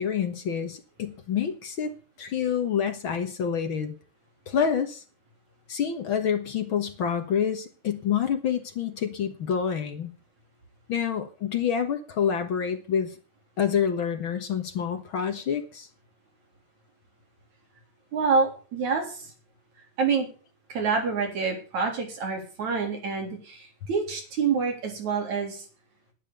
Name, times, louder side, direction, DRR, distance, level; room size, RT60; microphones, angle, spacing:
voice 1, 0.0-1.9 2.2-3.9 4.5-5.0 5.7-10.1 10.9-13.1 13.6-15.9, left 7 dB, 55° left, 7 dB, 1.8 m, -27 dB
voice 2, 18.1-19.3 20.0-20.3 20.7-25.6, right 5 dB, 70° right, 2 dB, 4.9 m, -27 dB
10.5 x 9.8 x 6.8 m, 0.37 s
omnidirectional pair, 3.4 m